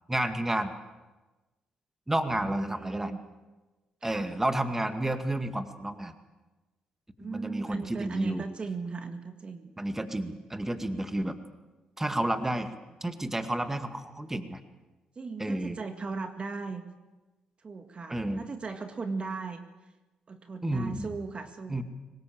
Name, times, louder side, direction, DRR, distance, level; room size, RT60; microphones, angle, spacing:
voice 1, 0.1-0.7 2.1-3.1 4.0-6.1 7.2-8.4 9.8-11.4 12.0-12.7 13.0-14.6 15.4-15.8 18.1-18.4 20.6-21.1 21.7-21.8, right 1 dB, 15° right, 8 dB, 2.2 m, -30 dB
voice 2, 2.3-3.2 4.0-4.3 7.2-9.7 15.2-16.9 17.6-19.6 20.3-21.8, right 4 dB, 45° right, 7 dB, 1.9 m, -37 dB
23.0 x 20.0 x 7.8 m, 1.1 s
supercardioid pair, 55°, 3 cm